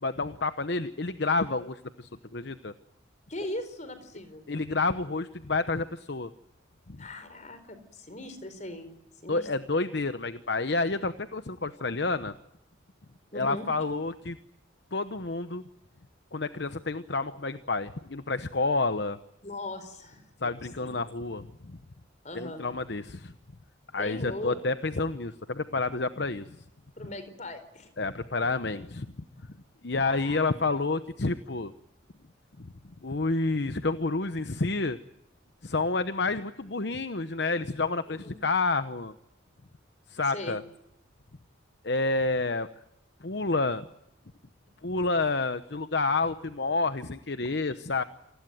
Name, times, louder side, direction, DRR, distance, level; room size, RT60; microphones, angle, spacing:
voice 1, 0.0-2.7 4.5-6.3 6.9-7.0 9.3-12.3 13.3-14.4 14.9-15.6 16.3-19.2 20.4-21.8 22.3-23.3 23.9-26.6 28.0-29.1 29.8-31.7 32.6-32.7 33.0-35.0 35.6-39.1 40.1-40.6 41.8-42.7 43.2-43.9 44.8-48.0, left 3 dB, 55° left, 11 dB, 0.9 m, -29 dB
voice 2, 3.3-4.4 7.0-8.9 9.2-9.5 13.3-13.7 19.4-20.9 22.2-22.6 24.0-24.6 27.0-27.9 29.9-30.5 38.1-38.4 40.3-40.6 44.7-44.8, left 1 dB, 35° left, 10 dB, 4.4 m, -40 dB
28.0 x 20.0 x 9.2 m, 0.82 s
head